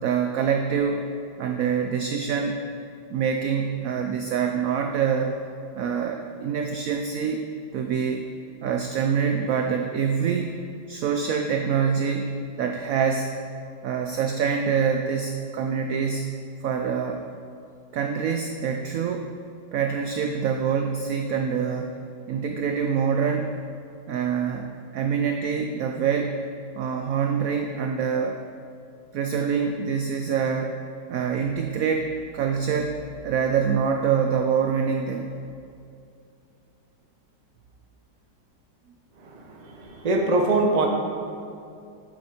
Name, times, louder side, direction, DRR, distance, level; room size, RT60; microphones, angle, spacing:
voice 1, 0.0-1.0 1.4-2.6 3.1-5.4 5.7-7.5 7.7-8.2 8.6-10.6 10.9-13.4 13.8-17.2 17.9-19.3 19.7-21.9 22.3-23.5 24.1-24.7 24.9-26.4 26.7-28.4 29.1-30.8 31.1-35.3, right 6 dB, 75° right, 4 dB, 0.8 m, -25 dB
voice 2, 39.3-40.9, right 2 dB, 30° right, 1 dB, 0.7 m, -23 dB
9.2 x 7.5 x 4.3 m, 2.5 s
omnidirectional pair, 2.0 m